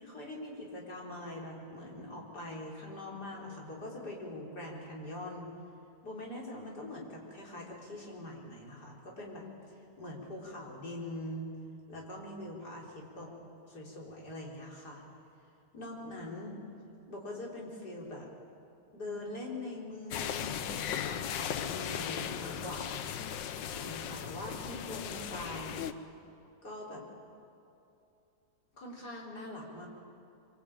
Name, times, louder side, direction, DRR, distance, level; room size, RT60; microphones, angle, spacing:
voice 1, 0.0-5.5 6.0-11.5 11.9-13.3 13.7-15.0 15.7-16.6 17.1-18.3 18.9-20.6 21.0-23.1 23.6-25.8 26.6-27.0 28.7-29.9, left 1 dB, 60° left, -2 dB, 4.9 m, -43 dB
sound 1, 20.1-25.9, left 9 dB, 75° left, 1.6 m, -37 dB
24.5 x 24.5 x 8.9 m, 2.7 s
omnidirectional pair, 2.0 m